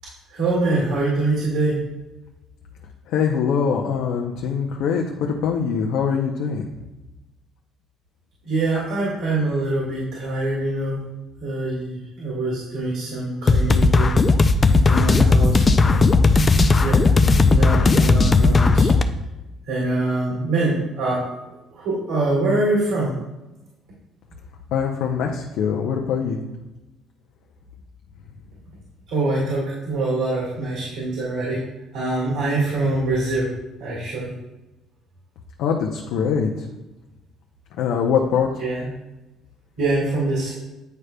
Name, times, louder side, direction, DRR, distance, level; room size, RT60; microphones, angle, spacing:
voice 1, 0.3-1.8 8.4-11.0 11.4-14.2 14.8-16.2 16.8-17.0 17.5-18.9 19.7-23.1 29.1-31.6 31.9-33.5 33.8-34.3 38.6-38.9 39.8-40.5, right 2 dB, 85° right, -6 dB, 2.0 m, -24 dB
voice 2, 3.1-6.7 24.7-26.4 35.6-36.7 37.8-38.5, left 6 dB, 75° left, 1 dB, 0.6 m, -23 dB
sound 1, 13.5-19.0, left 3 dB, 25° left, 0.3 m, -16 dB
9.4 x 5.0 x 2.2 m, 1.0 s
cardioid pair, 135°, 0 cm